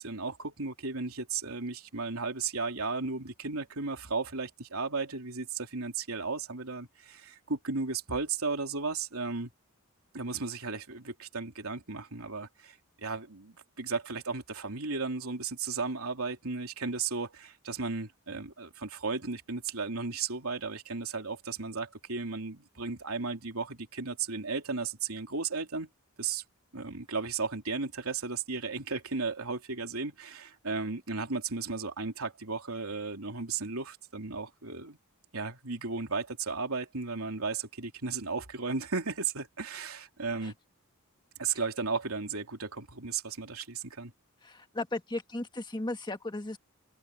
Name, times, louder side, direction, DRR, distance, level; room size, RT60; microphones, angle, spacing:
voice 1, 0.0-9.5 10.1-25.9 26.2-26.4 26.7-35.0 35.3-40.5 41.4-44.1, right 4 dB, 75° right, 3.3 m, -35 dB
voice 2, 44.4-46.6, left 2 dB, 20° left, 1.4 m, -36 dB
open air
head